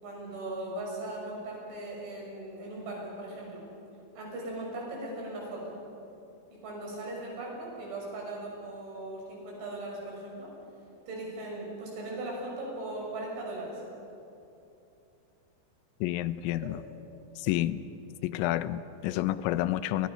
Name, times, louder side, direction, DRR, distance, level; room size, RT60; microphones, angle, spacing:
voice 1, 0.0-3.6 4.2-5.6 6.6-10.5 11.1-13.8 16.6-16.7, right 2 dB, 70° right, -2 dB, 8.7 m, -38 dB
voice 2, 16.0-16.8 17.4-17.8 18.2-20.1, left 14 dB, 85° left, 14 dB, 3.4 m, -29 dB
30.0 x 26.0 x 5.7 m, 2.8 s
omnidirectional pair, 5.7 m